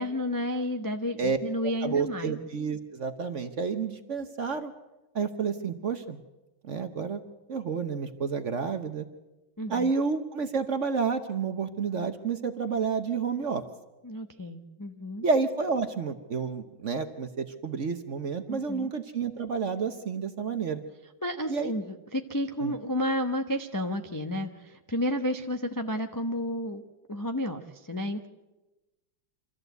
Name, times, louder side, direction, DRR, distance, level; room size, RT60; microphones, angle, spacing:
voice 1, 0.0-2.3 9.6-9.9 14.0-15.2 18.5-18.9 21.2-26.8 27.1-28.3, left 1 dB, 25° left, 4 dB, 0.4 m, -31 dB
voice 2, 1.8-4.7 5.1-6.2 6.6-7.2 7.5-9.1 9.7-13.6 15.2-20.8 21.5-21.7 22.6-22.8, right 5 dB, 50° right, 8 dB, 1.0 m, -30 dB
26.5 x 14.0 x 8.0 m, 1.1 s
omnidirectional pair, 2.1 m